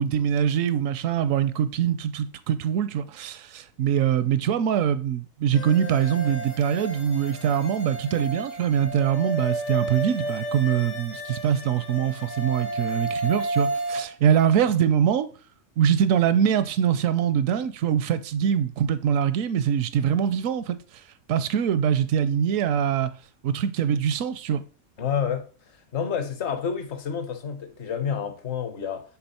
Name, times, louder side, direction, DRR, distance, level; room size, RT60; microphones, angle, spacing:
voice 1, 0.0-15.3 15.8-20.8 21.3-23.1 23.4-24.6, right 9 dB, 80° right, 1.0 m, -23 dB
sound 1, 5.5-14.0, right 1 dB, 80° left, 1.7 m, -32 dB
voice 2, 25.0-25.5 25.9-29.0, left 7 dB, 60° left, 1.2 m, -29 dB
6.9 x 3.7 x 4.1 m
omnidirectional pair, 1.4 m